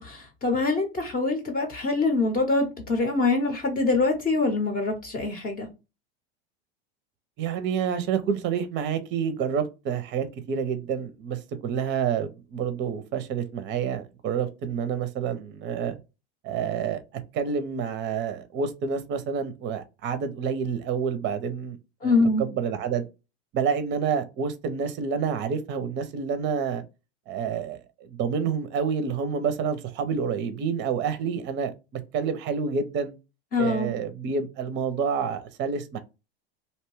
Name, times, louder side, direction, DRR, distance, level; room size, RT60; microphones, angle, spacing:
voice 1, 0.0-5.7 22.0-22.4 33.5-34.0, left 3 dB, 30° left, 0.7 m, -24 dB
voice 2, 7.4-16.0 16.4-17.0 17.3-21.8 22.0-23.1 23.5-26.8 27.3-33.1 33.6-36.0, right 6 dB, 35° right, 0.5 m, -28 dB
2.6 x 2.2 x 3.1 m
hypercardioid pair, 100°, 31 cm